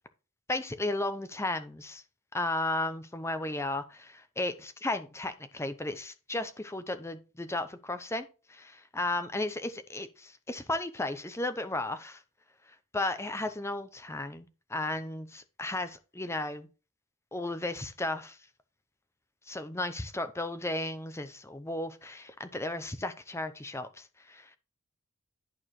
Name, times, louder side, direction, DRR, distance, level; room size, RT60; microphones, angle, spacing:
voice 1, 0.5-2.0 2.3-12.2 12.9-16.7 17.3-18.4 19.5-24.6, left 2 dB, 10° left, 0.6 m, -34 dB
11.0 x 4.7 x 3.1 m
head